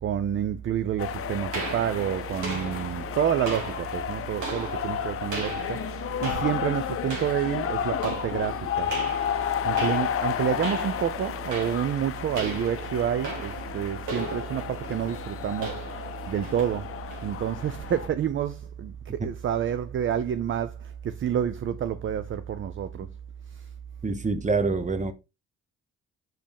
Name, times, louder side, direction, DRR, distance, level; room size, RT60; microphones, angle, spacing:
voice 1, 0.0-5.8 6.2-8.9 9.6-15.9 16.3-23.1 23.5-23.7, right 9 dB, 40° right, 0.5 m, -29 dB
sound 1, 1.0-18.1, left 9 dB, 50° left, 0.6 m, -32 dB
sound 2, 1.5-17.9, right 2 dB, 80° right, 3.0 m, -38 dB
voice 2, 24.0-25.1, right 3 dB, 25° right, 0.9 m, -26 dB
5.7 x 5.1 x 3.4 m
cardioid pair, 90°, 30 cm